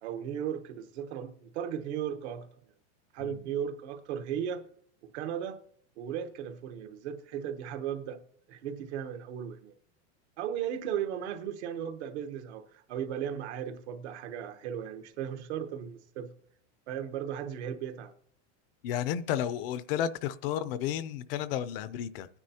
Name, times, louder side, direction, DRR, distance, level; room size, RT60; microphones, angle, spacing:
voice 1, 0.0-2.5 3.1-4.6 5.0-5.6 6.0-8.2 8.5-9.7 10.4-16.3 16.9-18.1, right 9 dB, 70° right, 1.2 m, -36 dB
voice 2, 18.8-22.3, left 10 dB, 55° left, 0.5 m, -32 dB
22.0 x 9.7 x 2.8 m
supercardioid pair, 170°, 35 cm